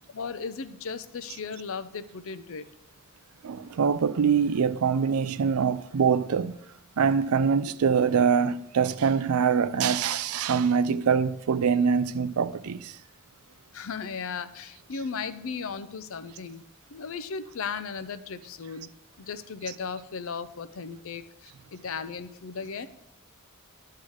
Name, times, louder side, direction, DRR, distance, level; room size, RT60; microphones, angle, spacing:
voice 1, 0.1-2.7 13.7-16.6 16.9-18.9 19.2-22.9, left 5 dB, 65° left, 0.6 m, -36 dB
voice 2, 3.4-6.5 7.0-12.9, right 6 dB, 90° right, 0.4 m, -24 dB
11.0 x 3.8 x 6.3 m
head